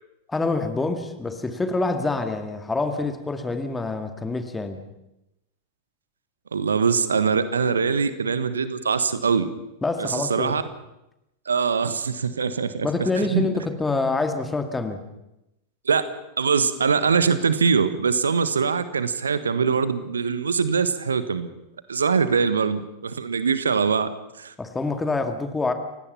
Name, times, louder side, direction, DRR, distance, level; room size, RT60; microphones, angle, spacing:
voice 1, 0.3-4.9 9.8-10.6 12.8-15.0 24.6-25.7, left 3 dB, 10° left, 7 dB, 2.2 m, -26 dB
voice 2, 6.5-9.5 10.0-10.6 11.5-13.5 15.8-16.1 16.4-21.5 21.9-24.1 24.4-24.5, right 5 dB, 70° right, 13 dB, 1.3 m, -23 dB
29.5 x 17.0 x 5.8 m, 0.90 s
figure-of-eight pair, 90°, 0 cm